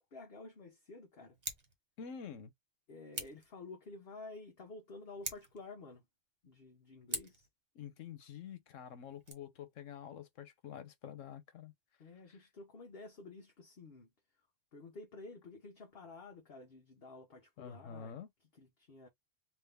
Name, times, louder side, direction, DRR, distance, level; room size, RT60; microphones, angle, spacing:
voice 1, 0.0-1.3 2.9-6.0 6.4-7.5 12.0-14.1 14.7-18.1 18.6-19.1, left 3 dB, 55° left, 1.1 m, -51 dB
Scissors, 1.3-1.7 3.1-3.5 5.1-5.6 7.1-7.5 9.1-9.3, right 3 dB, 35° right, 1.0 m, -42 dB
voice 2, 2.0-2.5 7.7-11.7 12.3-12.4 17.6-18.3, left 7 dB, 85° left, 1.2 m, -48 dB
3.6 x 2.6 x 3.4 m
omnidirectional pair, 1.3 m